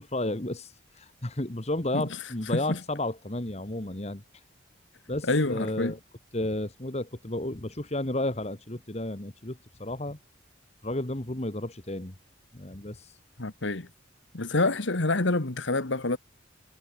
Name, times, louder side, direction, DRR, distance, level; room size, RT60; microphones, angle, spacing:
voice 1, 0.0-4.4 5.1-6.0 6.3-10.2 10.8-12.1 12.5-13.2, left 1 dB, 35° left, 1.7 m, -32 dB
voice 2, 5.3-5.9 13.4-13.9 14.3-16.2, left 2 dB, 75° left, 1.8 m, -27 dB
head